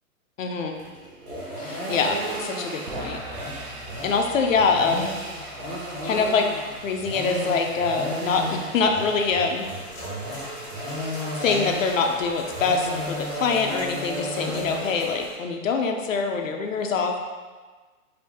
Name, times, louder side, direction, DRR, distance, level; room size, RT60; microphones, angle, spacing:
voice 1, 0.4-0.8 1.6-3.2 4.0-5.1 6.0-6.5 6.8-9.7 11.4-17.2, left 4 dB, 60° left, 3 dB, 0.6 m, -24 dB
sound 1, 0.7-14.8, equal, 80° right, 1.4 m, -34 dB
sound 2, 2.9-9.2, right 2 dB, 50° right, 0.7 m, -43 dB
sound 3, 9.6-15.3, right 1 dB, 20° left, 0.7 m, -39 dB
4.2 x 2.8 x 3.5 m, 1.4 s
hypercardioid pair, 175°, 44 cm